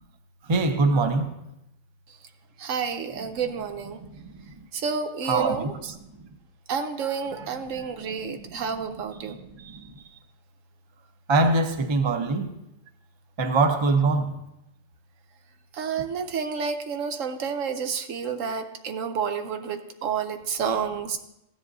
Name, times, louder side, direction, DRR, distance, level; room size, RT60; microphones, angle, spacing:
voice 1, 0.5-1.3 5.3-5.7 9.2-9.3 11.3-12.5 13.4-14.3, right 3 dB, 30° right, 0.6 m, -22 dB
voice 2, 2.6-4.0 4.7-6.0 6.7-9.8 15.7-21.2, right 6 dB, 85° right, 1.2 m, -30 dB
14.5 x 10.0 x 2.7 m
omnidirectional pair, 1.3 m